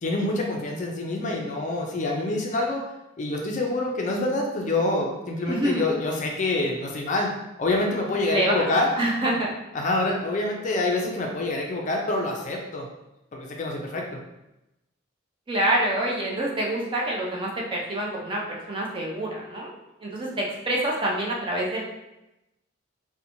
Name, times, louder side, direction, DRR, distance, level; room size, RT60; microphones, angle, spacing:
voice 1, 0.0-2.8 3.2-7.3 7.6-8.9 9.7-12.9 13.3-14.0, left 2 dB, 40° left, 0 dB, 0.4 m, -26 dB
voice 2, 5.5-5.9 8.3-8.5 9.0-9.5 15.5-18.4 18.7-19.7 20.0-21.8, right 1 dB, 25° right, -3 dB, 0.4 m, -26 dB
2.8 x 2.1 x 2.6 m, 0.92 s
head